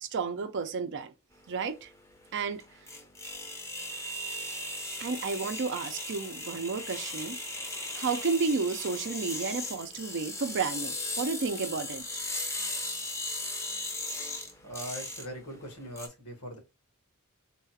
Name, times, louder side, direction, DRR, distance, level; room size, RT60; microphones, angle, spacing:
voice 1, 0.0-1.1 1.5-1.9 2.3-2.6 5.0-7.4 7.9-12.2, right 4 dB, 55° right, 0.5 m, -32 dB
sound 1, 1.4-16.1, left 2 dB, 15° left, 0.6 m, -37 dB
voice 2, 14.6-16.6, equal, 85° left, 1.6 m, -41 dB
3.8 x 2.4 x 2.7 m
head